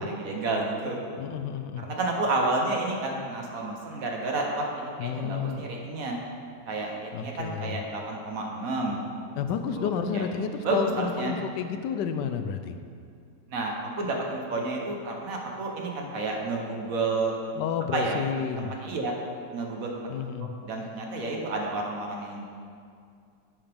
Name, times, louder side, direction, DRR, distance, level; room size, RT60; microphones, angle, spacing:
voice 1, 0.0-1.0 1.8-6.2 6.7-9.1 9.6-10.3 10.6-11.4 13.5-17.3 17.9-18.2 18.6-19.2 19.5-20.0 20.4-22.4, right 2 dB, 60° right, 0 dB, 1.3 m, -30 dB
voice 2, 1.2-1.8 5.0-5.6 7.1-7.8 9.4-12.8 17.6-18.7 20.1-20.5, left 7 dB, 85° left, 8 dB, 1.2 m, -30 dB
10.5 x 7.1 x 3.5 m, 2.3 s
omnidirectional pair, 1.8 m